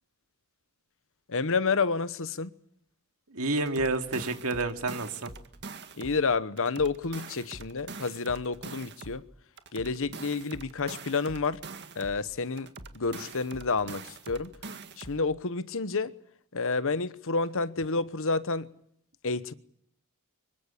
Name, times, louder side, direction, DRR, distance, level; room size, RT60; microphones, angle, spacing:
voice 1, 1.3-2.5 6.0-9.2 9.7-11.6 11.9-14.5 15.0-16.1 16.5-18.7 19.2-19.5, left 4 dB, 65° left, 1.1 m, -29 dB
voice 2, 3.3-5.3, right 2 dB, 75° right, 2.4 m, -29 dB
sound 1, 3.6-6.2 6.6-9.2 9.6-12.2 12.6-15.2, right 4 dB, 50° right, 1.9 m, -44 dB
25.0 x 22.5 x 8.6 m
head